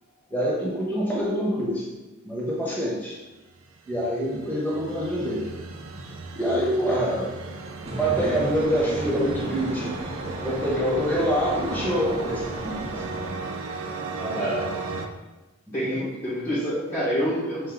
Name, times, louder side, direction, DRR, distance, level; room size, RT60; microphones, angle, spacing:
voice 1, 0.3-1.9 2.2-3.2 3.9-5.5 6.3-7.5 7.8-9.9 10.4-13.0 15.7-16.1, equal, 10° left, -6 dB, 1.1 m, -26 dB
sound 1, 3.5-15.1, right 3 dB, 80° right, 0.5 m, -36 dB
sound 2, 7.8-13.3, right 1 dB, 30° right, 0.6 m, -34 dB
voice 2, 14.2-14.7 15.7-17.7, equal, 40° left, -10 dB, 1.3 m, -27 dB
4.9 x 2.7 x 3.8 m, 1.1 s
head